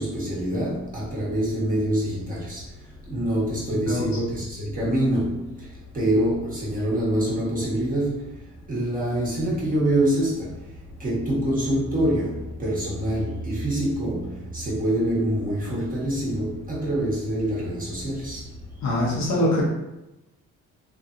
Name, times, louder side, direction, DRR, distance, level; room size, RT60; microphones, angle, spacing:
voice 1, 0.0-18.7, right 1 dB, 30° right, -8 dB, 1.4 m, -26 dB
voice 2, 3.7-4.1 18.8-19.6, left 1 dB, 65° left, -4 dB, 1.1 m, -23 dB
3.1 x 2.6 x 2.5 m, 0.95 s
cardioid pair, 90°, 30 cm